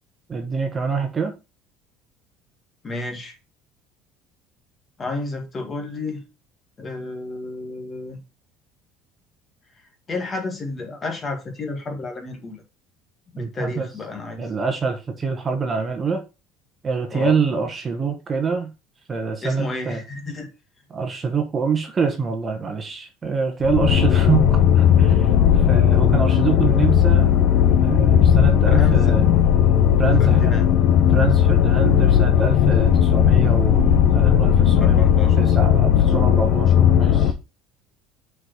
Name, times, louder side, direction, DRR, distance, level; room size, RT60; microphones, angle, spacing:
voice 1, 0.3-1.3 13.4-13.9 14.4-16.2 16.8-18.7 19.1-20.0 20.9-27.3 27.8-29.3 30.0-30.6 31.1-35.0 35.4-37.3, right 5 dB, 20° right, 1.3 m, -25 dB
voice 2, 2.8-3.4 5.0-6.2 6.8-8.2 10.1-12.6 13.3-14.5 17.1-17.4 19.4-20.5 28.7-29.2 30.2-30.7 34.8-35.4, left 3 dB, 20° left, 1.9 m, -31 dB
sound 1, 23.6-37.3, left 9 dB, 55° left, 1.1 m, -16 dB
6.1 x 4.9 x 6.0 m
cardioid pair, 160°, 0 cm